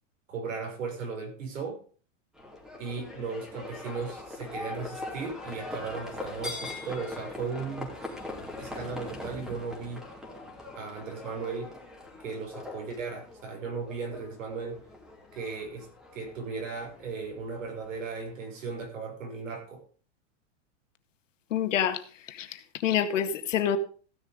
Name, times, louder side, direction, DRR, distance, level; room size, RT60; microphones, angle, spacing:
voice 1, 0.3-1.8 2.7-7.9 8.6-10.1 10.8-11.8 12.2-14.8 15.3-19.8, right 4 dB, 85° right, 6.0 m, -36 dB
Livestock farm animals working animals, 2.4-18.8, left 2 dB, ahead, 2.9 m, -42 dB
voice 2, 21.5-22.0 22.8-23.8, left 9 dB, 80° left, 1.9 m, -26 dB
15.5 x 7.2 x 5.1 m
hypercardioid pair, 140°, 37 cm